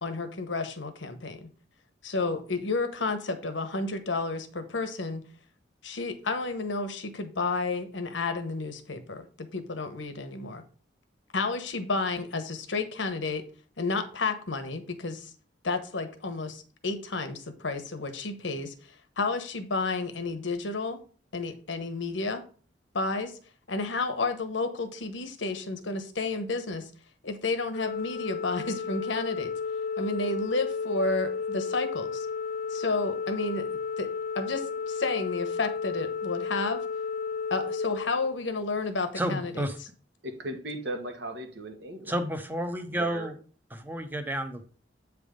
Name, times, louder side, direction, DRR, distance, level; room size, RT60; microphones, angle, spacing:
voice 1, 0.0-1.5 2.0-5.2 5.8-9.2 9.5-10.6 11.3-13.4 13.8-15.3 15.6-21.0 21.3-22.4 22.9-23.4 23.7-26.9 27.2-29.5 30.0-32.3 32.7-34.1 34.3-36.8 37.5-39.7, left 3 dB, 80° left, 8 dB, 1.0 m, -31 dB
Organ, 27.7-38.8, left 5 dB, 45° left, 0.4 m, -33 dB
voice 2, 39.2-39.8 42.1-43.3 43.7-44.6, equal, 10° right, 7 dB, 0.7 m, -31 dB
voice 3, 40.2-42.2 42.9-43.3, right 1 dB, 65° right, 6 dB, 1.2 m, -37 dB
8.2 x 3.5 x 5.1 m, 0.41 s
head